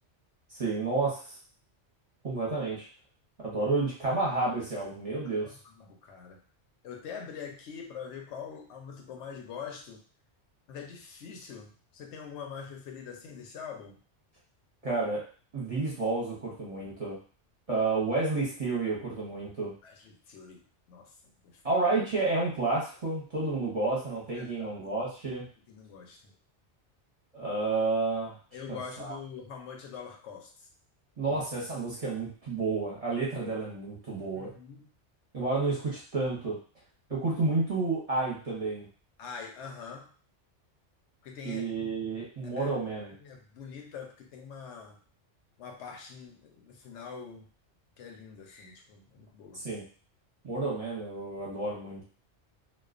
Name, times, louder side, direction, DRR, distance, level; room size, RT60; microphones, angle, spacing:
voice 1, 0.5-1.4 2.2-2.9 3.4-5.5 14.8-15.2 15.5-17.2 17.7-19.7 21.6-25.5 27.3-28.4 28.7-29.1 31.2-34.5 35.3-36.6 37.1-38.9 41.4-43.1 49.5-49.8 50.4-52.0, right 3 dB, 35° right, -5 dB, 0.7 m, -30 dB
voice 2, 5.4-6.4 6.8-10.0 10.7-14.0 19.8-20.6 20.9-21.1 21.5-21.8 24.3-24.8 25.7-26.3 28.5-30.7 31.3-31.4 34.3-34.9 39.2-40.1 41.2-41.6 42.1-42.7 43.2-45.0 45.6-47.4 48.0-49.6, left 6 dB, 80° left, 2 dB, 0.9 m, -44 dB
2.3 x 2.2 x 2.4 m, 0.40 s
omnidirectional pair, 1.2 m